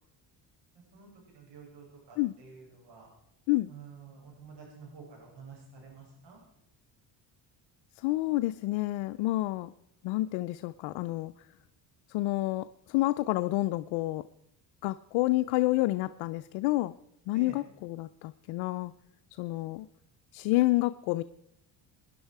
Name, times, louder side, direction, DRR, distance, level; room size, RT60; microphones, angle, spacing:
voice 1, 0.9-3.1 3.7-6.4 17.3-17.6, right 5 dB, 65° right, -2 dB, 7.6 m, -50 dB
voice 2, 8.0-9.7 10.0-11.3 12.1-14.3 14.8-16.9 17.3-18.9 19.4-19.9 20.3-21.2, left 18 dB, 85° left, 10 dB, 0.6 m, -29 dB
20.5 x 10.5 x 4.7 m, 0.76 s
cardioid pair, 95°, 44 cm